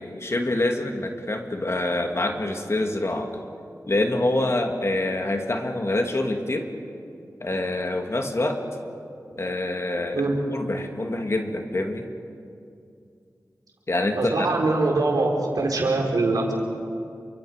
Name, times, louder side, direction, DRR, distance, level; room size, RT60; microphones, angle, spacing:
voice 1, 0.0-3.4 3.9-6.7 7.4-8.6 9.4-12.0 13.9-14.6, left 2 dB, 45° left, 3 dB, 2.6 m, -26 dB
voice 2, 14.1-16.6, right 2 dB, 85° right, 0 dB, 4.0 m, -23 dB
28.5 x 24.0 x 5.2 m, 2.5 s
cardioid pair, 45°, 6 cm